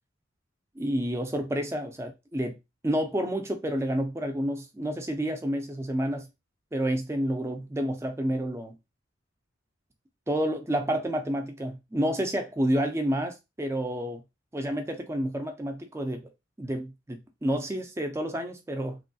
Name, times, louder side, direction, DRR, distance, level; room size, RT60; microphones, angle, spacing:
voice 1, 0.8-2.6 2.8-6.3 6.7-8.8 10.3-14.2 14.5-16.2 16.6-19.0, equal, 15° right, 0.4 m, -29 dB
3.1 x 2.3 x 2.6 m
head